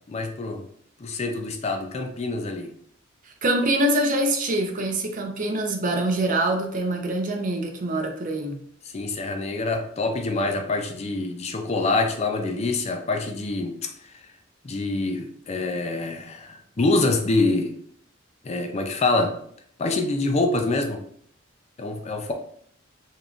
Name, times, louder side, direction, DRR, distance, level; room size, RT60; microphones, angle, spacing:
voice 1, 0.1-0.6 1.0-2.7 8.8-14.3 14.6-17.7 18.4-19.4 19.8-21.0 21.8-22.3, left 2 dB, 35° left, 4 dB, 0.4 m, -26 dB
voice 2, 3.4-8.6, right 1 dB, 40° right, 3 dB, 0.5 m, -24 dB
3.6 x 3.1 x 2.4 m, 0.64 s
head